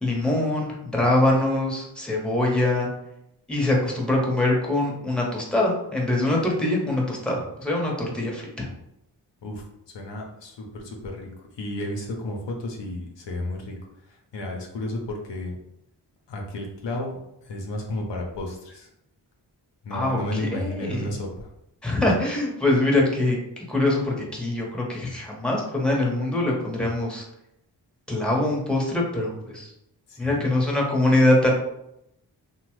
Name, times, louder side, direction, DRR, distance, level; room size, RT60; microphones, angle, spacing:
voice 1, 0.0-2.9 3.5-8.7 19.9-21.1 21.8-27.2 28.1-29.7 30.2-31.5, left 2 dB, ahead, -2 dB, 0.9 m, -23 dB
voice 2, 9.4-13.7 14.0-15.6 16.3-18.9 19.8-21.5 30.1-30.5, left 1 dB, 70° left, 0 dB, 0.7 m, -33 dB
2.9 x 2.2 x 3.0 m, 0.82 s
cardioid pair, 40°, 44 cm